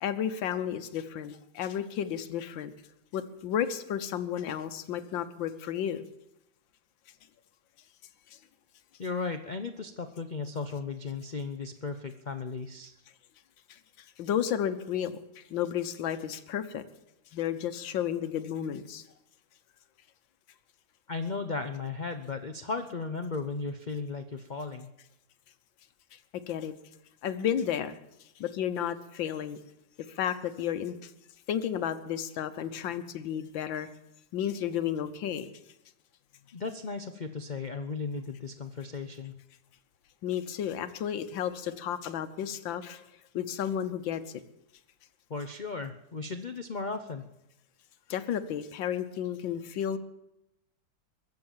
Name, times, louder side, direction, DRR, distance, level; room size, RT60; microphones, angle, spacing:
voice 1, 0.0-2.7 3.1-6.0 13.7-13.8 14.2-16.8 17.3-19.1 26.1-26.2 26.5-26.7 27.2-28.0 28.4-29.6 30.1-31.1 31.5-33.9 34.3-35.5 40.2-43.0 43.3-44.2 48.1-50.0, left 9 dB, 90° left, 11 dB, 1.7 m, -32 dB
voice 2, 9.0-12.9 21.1-24.9 36.5-39.4 45.3-47.3, left 4 dB, 65° left, 7 dB, 0.4 m, -36 dB
22.5 x 7.7 x 7.3 m, 0.87 s
omnidirectional pair, 2.0 m